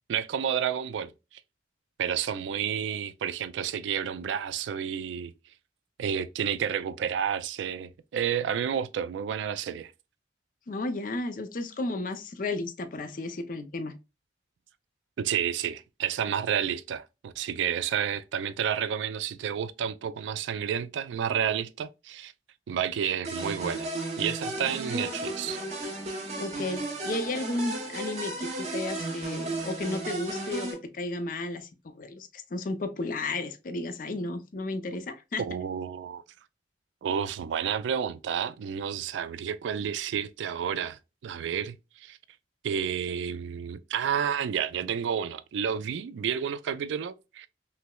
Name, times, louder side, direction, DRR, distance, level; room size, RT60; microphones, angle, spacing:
voice 1, 0.1-1.1 2.0-5.3 6.0-9.9 15.2-22.3 22.7-23.9 24.2-25.6 35.4-36.2 37.0-42.2 42.6-47.5, right 8 dB, 80° right, 0.3 m, -30 dB
voice 2, 10.7-13.9 24.6-24.8 26.4-35.4, left 2 dB, 45° left, 0.5 m, -33 dB
sound 1, 23.2-30.7, right 2 dB, 40° right, 0.9 m, -34 dB
5.6 x 2.0 x 2.2 m
head